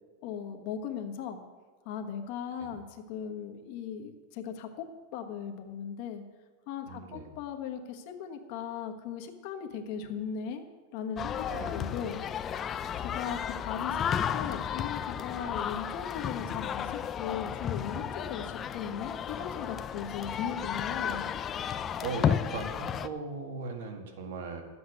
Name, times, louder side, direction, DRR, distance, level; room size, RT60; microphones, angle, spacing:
voice 1, 0.2-1.4 1.8-4.8 5.1-6.2 6.7-10.6 10.9-11.5 11.7-12.2 13.0-21.3, left 7 dB, 45° left, 4 dB, 1.3 m, -38 dB
voice 2, 6.9-7.3 11.5-12.2 21.0-21.2 22.0-24.6, right 4 dB, 70° right, 5 dB, 1.8 m, -39 dB
sound 1, 11.2-23.1, left 8 dB, 20° left, 0.3 m, -33 dB
12.5 x 8.0 x 6.4 m, 1.5 s
supercardioid pair, 170°, 0 cm